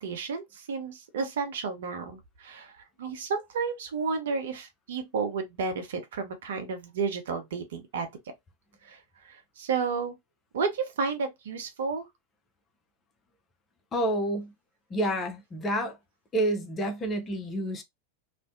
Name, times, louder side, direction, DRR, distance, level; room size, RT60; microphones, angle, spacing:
voice 1, 0.0-8.1 8.8-10.2 10.5-12.1, right 5 dB, 60° right, 0.6 m, -32 dB
voice 2, 13.9-14.5 14.9-16.0 16.3-17.8, right 1 dB, 20° left, 0.6 m, -29 dB
2.5 x 2.1 x 2.6 m
figure-of-eight pair, 90°, 0 cm